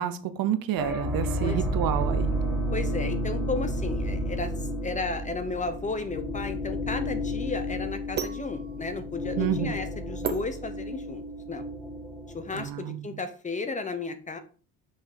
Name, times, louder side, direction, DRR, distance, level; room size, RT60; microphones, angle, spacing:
voice 1, 0.0-2.4 9.4-9.8 12.5-13.0, right 10 dB, 65° right, 0.8 m, -29 dB
sound 1, 0.8-12.7, equal, ahead, 2.0 m, -31 dB
voice 2, 2.7-11.2 11.5-11.7 12.3-14.4, left 3 dB, 20° left, 0.7 m, -34 dB
sound 2, 6.1-11.3, right 7 dB, 30° right, 0.6 m, -38 dB
5.9 x 5.1 x 5.0 m
cardioid pair, 165°, 37 cm